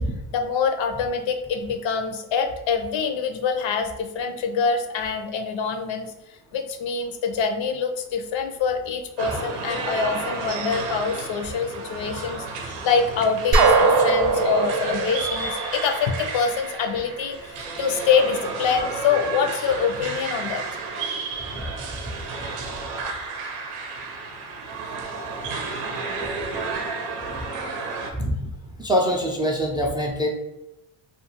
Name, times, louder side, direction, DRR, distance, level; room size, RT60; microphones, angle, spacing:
voice 1, 0.3-6.1 6.5-20.6, left 5 dB, 65° left, 6 dB, 0.6 m, -25 dB
sound 1, 9.2-28.1, right 4 dB, 90° right, 0.6 m, -32 dB
sound 2, 13.5-16.3, right 3 dB, 45° right, 0.6 m, -20 dB
voice 2, 28.2-28.5 28.8-30.3, equal, 10° right, 0 dB, 0.3 m, -23 dB
2.5 x 2.3 x 2.8 m, 0.93 s
supercardioid pair, 70°, 50 cm